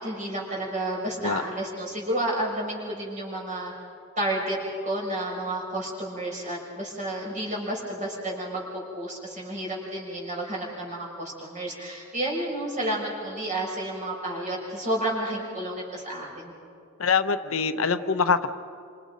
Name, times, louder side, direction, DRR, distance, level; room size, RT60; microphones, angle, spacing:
voice 1, 0.0-3.7 4.2-4.6 4.8-16.5, right 1 dB, 35° right, -3 dB, 6.2 m, -31 dB
voice 2, 17.0-18.5, left 5 dB, 80° left, 9 dB, 0.9 m, -24 dB
28.5 x 26.0 x 5.2 m, 2.4 s
head